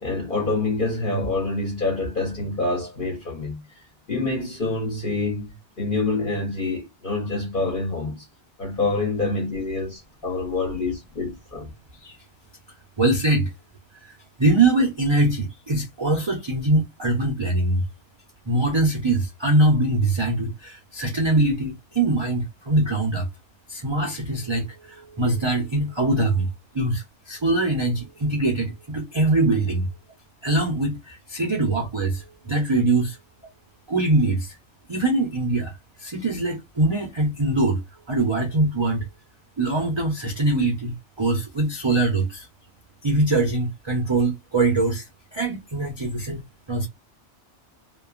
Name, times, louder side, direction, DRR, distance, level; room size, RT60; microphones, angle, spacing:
voice 1, 0.0-3.6 4.1-8.2 8.6-11.7, left 3 dB, 50° left, 1.0 m, -26 dB
voice 2, 13.0-13.5 14.0-14.1 14.4-17.9 18.5-23.3 23.7-26.5 26.7-29.9 30.4-33.2 33.9-34.5 34.9-37.8 38.1-39.1 39.6-42.5 43.0-46.4 46.7-46.9, right 2 dB, 35° right, 0.5 m, -23 dB
2.8 x 2.2 x 2.4 m
omnidirectional pair, 1.2 m